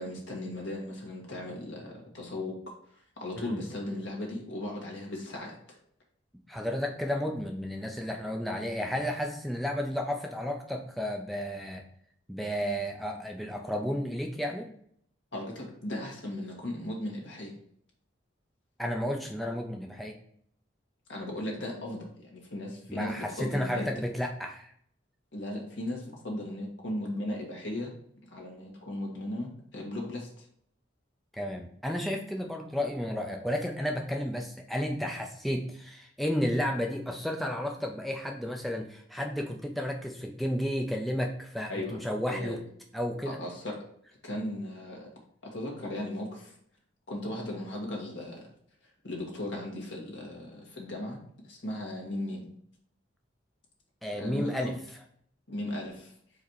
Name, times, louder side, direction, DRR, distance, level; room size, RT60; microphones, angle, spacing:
voice 1, 0.0-2.5 3.2-5.5 15.3-17.5 21.1-23.8 25.3-27.9 28.3-30.4 41.7-42.0 42.3-42.6 43.4-43.7 44.2-45.1 45.4-46.5 47.1-48.5 49.0-52.5 54.2-54.7 55.5-56.1, left 1 dB, 70° left, -1 dB, 1.8 m, -37 dB
voice 2, 6.5-11.8 12.3-14.7 18.8-20.2 22.9-24.7 31.3-42.6 42.9-43.4 54.0-54.8, equal, ahead, 1 dB, 0.5 m, -32 dB
4.8 x 4.3 x 4.7 m, 0.66 s
head